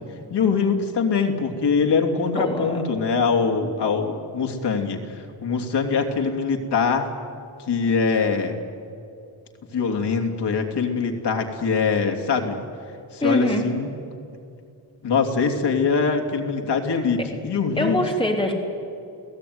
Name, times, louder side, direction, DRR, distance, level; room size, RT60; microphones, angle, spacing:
voice 1, 0.3-7.1 7.7-8.6 9.7-12.6 13.1-13.9 15.0-18.0, left 5 dB, 70° left, 3 dB, 3.2 m, -23 dB
voice 2, 2.4-2.8 13.2-13.7 15.5-15.6 17.2-17.3 17.8-18.5, left 1 dB, 10° left, 1 dB, 3.7 m, -23 dB
29.5 x 17.5 x 9.7 m, 2.6 s
wide cardioid pair, 155°, 42 cm